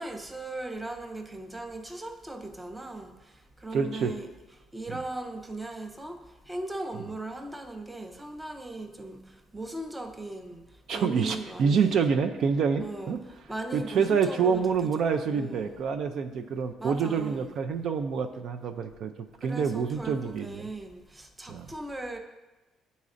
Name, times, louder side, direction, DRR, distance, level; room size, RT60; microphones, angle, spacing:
voice 1, 0.0-12.0 12.8-15.8 16.8-17.6 19.4-22.2, right 2 dB, 10° right, 5 dB, 0.5 m, -39 dB
voice 2, 3.7-4.1 10.9-13.2 13.7-19.1 19.4-20.7 21.5-21.7, right 6 dB, 60° right, 7 dB, 0.4 m, -27 dB
9.5 x 4.1 x 2.5 m, 1.1 s
cardioid pair, 125°, 0 cm